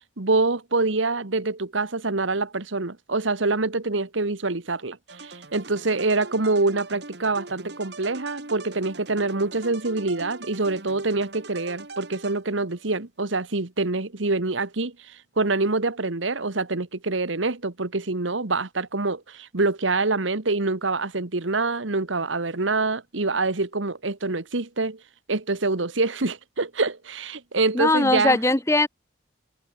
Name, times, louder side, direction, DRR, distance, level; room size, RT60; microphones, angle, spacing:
voice 1, 0.2-25.0 25.3-28.4, right 3 dB, 80° right, 1.6 m, -25 dB
sound 1, 5.1-12.8, right 3 dB, 60° right, 2.2 m, -42 dB
voice 2, 27.7-28.9, left 2 dB, 15° left, 1.0 m, -20 dB
head